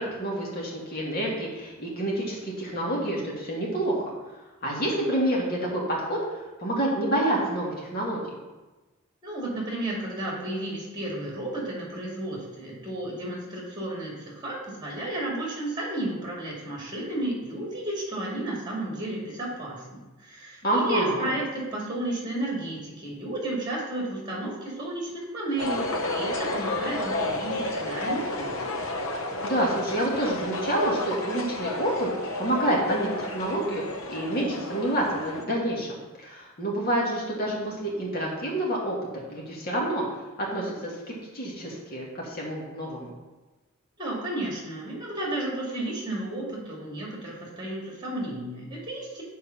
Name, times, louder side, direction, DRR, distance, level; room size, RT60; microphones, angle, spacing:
voice 1, 0.0-4.0 4.6-6.2 6.6-8.3 20.6-21.3 29.4-32.1 32.4-33.8 34.1-40.0 40.4-43.1, right 1 dB, 45° left, -3 dB, 2.0 m, -28 dB
voice 2, 9.2-25.8 26.1-28.6 44.0-49.2, right 1 dB, 20° right, -3 dB, 2.1 m, -32 dB
sound 1, 25.6-35.4, left 2 dB, 70° left, 0.8 m, -31 dB
6.8 x 4.7 x 5.8 m, 1.2 s
head